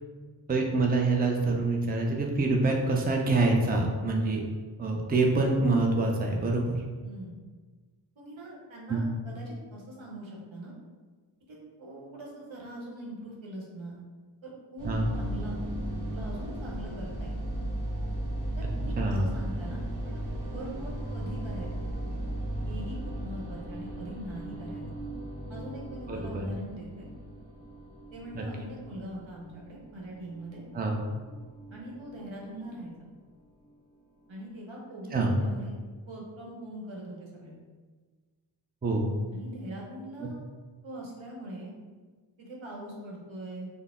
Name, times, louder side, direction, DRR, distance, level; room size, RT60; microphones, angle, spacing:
voice 1, 0.5-4.4 4.8-6.8 8.9-9.0 14.8-15.1 19.0-19.2 26.1-26.4 28.3-28.4 30.7-31.0 35.1-35.3 38.8-39.1 40.2-40.3, right 2 dB, 20° right, 1 dB, 0.5 m, -26 dB
voice 2, 7.0-7.4 8.2-10.7 11.5-14.0 14.4-14.9 15.1-15.6 16.1-17.4 18.6-21.7 22.6-24.8 25.5-27.1 28.1-30.6 31.7-33.1 34.3-35.7 36.0-37.5 39.3-40.4 40.8-41.7 42.4-43.7, right 1 dB, 70° right, -3 dB, 1.0 m, -42 dB
sound 1, 14.8-33.1, right 1 dB, 40° right, 1.2 m, -37 dB
3.9 x 2.1 x 3.6 m, 1.4 s
cardioid pair, 45°, 48 cm